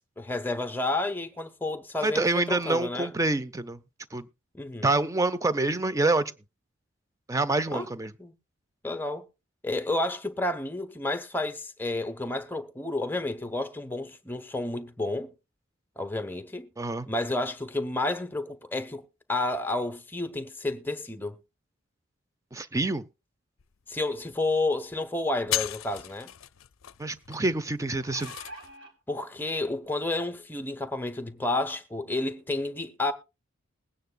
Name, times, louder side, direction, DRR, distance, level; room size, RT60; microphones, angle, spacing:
voice 1, 0.0-3.1 4.5-4.9 7.7-7.9 8.2-8.3 8.8-9.2 9.6-15.3 16.0-16.7 17.1-19.0 19.3-21.4 23.9-26.3 29.1-33.1, left 2 dB, 10° left, 0.8 m, -30 dB
voice 2, 2.0-3.8 4.1-4.2 4.8-6.3 7.3-8.1 16.8-17.1 22.5-23.0 27.0-28.3, right 2 dB, 15° right, 0.5 m, -26 dB
sound 1, 23.6-23.7 23.9-24.4 24.7-25.0 25.3-28.8, left 14 dB, 75° left, 0.5 m, -35 dB
sound 2, 27.9-28.9 29.8-29.9 30.3-30.4, right 2 dB, 70° right, 3.6 m, -44 dB
20.5 x 9.3 x 2.3 m
head